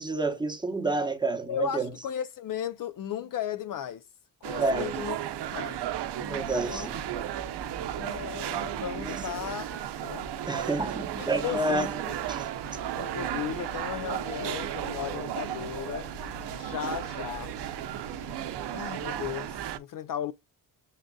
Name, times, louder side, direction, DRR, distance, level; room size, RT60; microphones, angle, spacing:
voice 1, 0.0-1.9 4.6-4.9 6.2-7.0 9.0-9.2 10.5-12.5, right 2 dB, 10° right, 0.9 m, -29 dB
voice 2, 1.5-4.0 4.4-5.2 5.5-5.8 6.3-6.9 8.0-9.7 10.0-10.3 11.2-12.2 13.0-16.1 16.5-17.5 18.7-20.3, left 10 dB, 55° left, 0.4 m, -35 dB
sound 1, 4.4-19.8, right 10 dB, 70° right, 0.7 m, -34 dB
Engine, 12.5-18.5, left 2 dB, 70° left, 1.4 m, -50 dB
7.3 x 2.5 x 2.2 m
cardioid pair, 100°, 42 cm